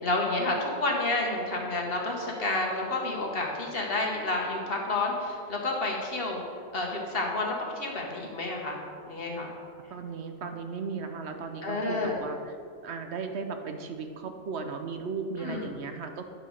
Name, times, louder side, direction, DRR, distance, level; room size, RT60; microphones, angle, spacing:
voice 1, 0.0-6.4 6.7-8.8 9.1-9.5 11.6-12.2 15.4-15.6, left 2 dB, 55° left, 0 dB, 1.6 m, -30 dB
voice 2, 9.9-12.4 12.8-16.2, right 5 dB, 70° right, 6 dB, 1.0 m, -36 dB
10.0 x 5.1 x 6.3 m, 2.2 s
omnidirectional pair, 1.2 m